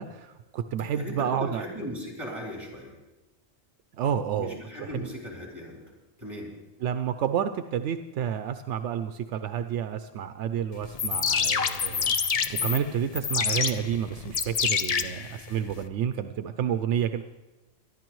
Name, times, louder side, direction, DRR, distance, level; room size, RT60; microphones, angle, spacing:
voice 1, 0.0-1.6 4.0-5.1 6.8-12.1 12.6-17.2, right 9 dB, 85° right, 9 dB, 0.9 m, -30 dB
voice 2, 0.9-2.9 4.3-5.8 6.2-6.5 15.0-15.1, left 1 dB, 25° right, -3 dB, 3.9 m, -38 dB
sound 1, 10.8-15.8, left 6 dB, 45° left, 0.5 m, -27 dB
23.5 x 11.5 x 3.1 m, 1.1 s
omnidirectional pair, 1.2 m